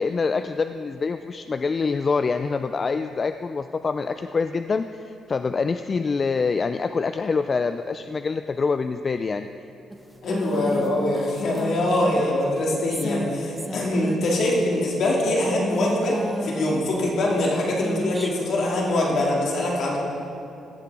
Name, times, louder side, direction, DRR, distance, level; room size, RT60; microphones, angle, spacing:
voice 1, 0.0-9.5, left 4 dB, 35° left, 9 dB, 0.3 m, -25 dB
sound 1, 9.9-15.0 15.5-19.2, right 1 dB, 10° right, 0.7 m, -34 dB
voice 2, 10.2-20.0, left 1 dB, 65° left, -3 dB, 2.5 m, -23 dB
16.0 x 6.8 x 4.8 m, 2.7 s
cardioid pair, 90°, 0 cm